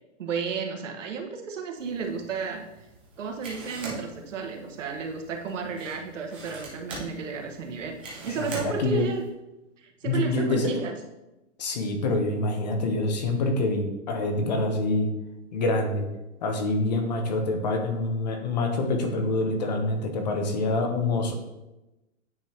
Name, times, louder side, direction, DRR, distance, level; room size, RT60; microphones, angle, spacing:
voice 1, 0.2-2.7 3.2-8.0 8.2-9.2 9.8-10.9, right 5 dB, 90° right, 3 dB, 1.4 m, -32 dB
sound 1, 1.8-9.3, right 2 dB, 10° right, 0.4 m, -43 dB
voice 2, 8.4-9.1 10.0-10.8 11.6-15.1 15.5-16.1 16.4-21.3, left 2 dB, 35° left, 4 dB, 0.8 m, -26 dB
9.0 x 5.1 x 2.8 m, 0.98 s
hypercardioid pair, 175°, 37 cm